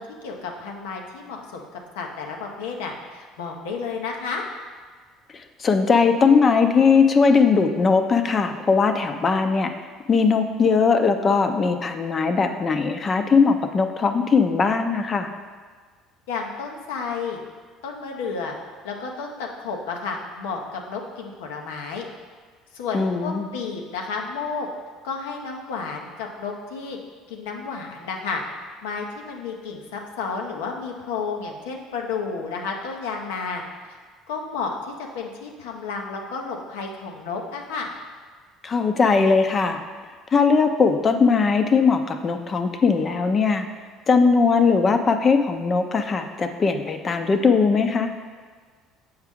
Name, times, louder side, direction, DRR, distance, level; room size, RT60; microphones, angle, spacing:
voice 1, 0.0-4.5 16.3-17.4 17.8-18.5 18.8-22.1 22.7-24.7 25.0-27.0 27.3-28.4 28.8-33.6 34.3-37.9, left 5 dB, 90° left, 1 dB, 0.9 m, -31 dB
voice 2, 5.3-9.7 10.1-15.3 22.9-23.5 38.6-39.8 40.3-43.7 44.1-48.1, left 5 dB, 35° left, 7 dB, 0.6 m, -19 dB
7.3 x 4.8 x 3.6 m, 1.5 s
supercardioid pair, 85°, 0 cm